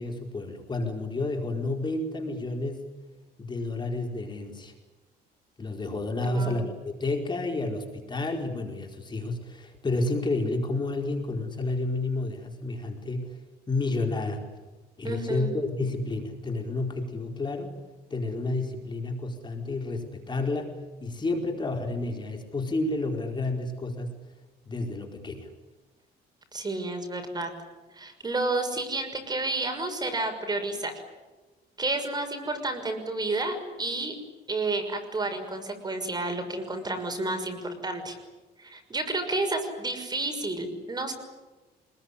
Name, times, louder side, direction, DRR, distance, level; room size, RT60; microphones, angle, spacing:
voice 1, 0.0-2.9 3.4-4.7 5.6-13.3 13.7-14.4 15.0-17.7 18.1-20.7 21.0-24.1 24.7-25.5, left 2 dB, 25° left, 2 dB, 4.6 m, -30 dB
voice 2, 6.2-6.7 15.0-15.5 26.5-27.5 27.9-30.9 31.8-34.2 34.5-38.2 38.6-41.1, right 2 dB, 25° right, 6 dB, 6.1 m, -31 dB
27.0 x 21.0 x 9.9 m, 1.2 s
cardioid pair, 120°, 17 cm